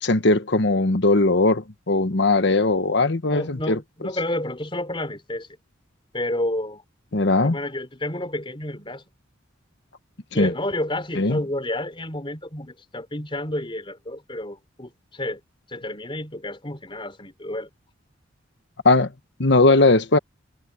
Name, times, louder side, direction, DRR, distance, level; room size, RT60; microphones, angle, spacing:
voice 1, 0.0-3.8 7.1-7.6 10.4-10.5 11.2-11.4 18.8-19.1 19.4-20.2, left 2 dB, 60° left, 1.2 m, -19 dB
voice 2, 3.3-5.5 6.1-6.8 7.4-9.0 10.3-15.4 15.7-17.7, left 1 dB, 25° left, 4.1 m, -30 dB
head